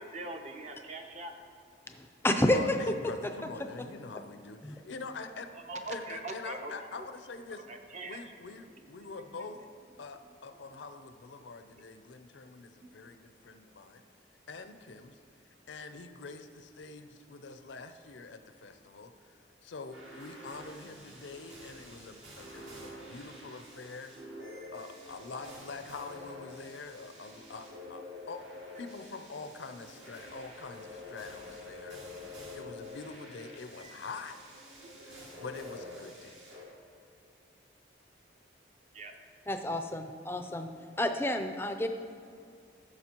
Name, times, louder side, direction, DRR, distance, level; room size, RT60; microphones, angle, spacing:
voice 1, 0.0-1.3 5.5-6.7 7.5-8.2 8.8-8.9 12.8-12.9 38.9-39.1, right 2 dB, 35° right, 4 dB, 0.7 m, -42 dB
voice 2, 2.0-3.5 4.6-4.8 39.5-40.7 41.0-41.9, left 1 dB, 10° left, 6 dB, 0.4 m, -30 dB
voice 3, 2.5-5.5 5.9-7.6 8.0-9.6 10.0-14.0 14.5-15.2 15.7-19.3 19.6-24.1 24.7-28.4 28.8-34.4 35.0-36.4, left 4 dB, 75° left, 8 dB, 0.5 m, -45 dB
sound 1, 19.9-36.6, left 2 dB, 70° right, 2.2 m, -48 dB
14.0 x 6.3 x 2.9 m, 2.4 s
head